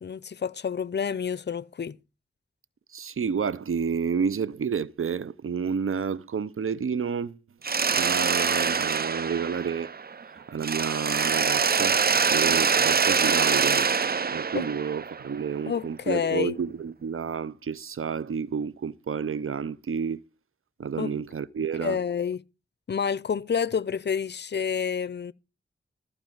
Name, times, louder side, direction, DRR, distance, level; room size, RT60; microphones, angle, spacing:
voice 1, 0.0-2.0 14.5-14.7 15.7-16.6 21.0-21.2 21.8-22.4 22.9-25.3, left 7 dB, 55° left, 0.6 m, -28 dB
voice 2, 2.9-7.4 7.9-9.9 10.3-12.0 12.3-13.9 14.3-20.2 20.8-22.0, right 6 dB, 90° right, 0.7 m, -30 dB
Mechanisms, 7.6-10.2 10.6-15.5, right 5 dB, 45° right, 0.5 m, -24 dB
14.0 x 4.8 x 7.8 m
wide cardioid pair, 50°, 21 cm